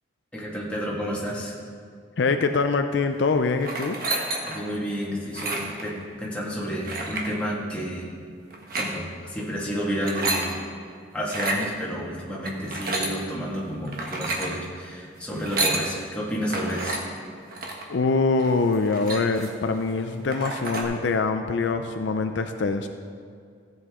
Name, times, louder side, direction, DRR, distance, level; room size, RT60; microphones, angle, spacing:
voice 1, 0.3-1.6 4.4-8.1 8.8-10.6 11.1-17.0, equal, 5° left, -6 dB, 1.9 m, -30 dB
voice 2, 2.2-4.0 17.9-22.9, left 4 dB, 65° left, 7 dB, 0.5 m, -24 dB
sound 1, 3.6-4.7 5.3-5.8 6.9-7.3 8.5-8.9 9.9-10.5 11.2-11.6 12.4-13.2 13.9-14.5 15.3-15.9 16.5-17.0 17.5-17.9 18.4-18.5 18.7-19.6 20.0-20.1 20.3-20.8, right 2 dB, 45° right, 1.3 m, -29 dB
15.0 x 7.9 x 3.7 m, 2.3 s
head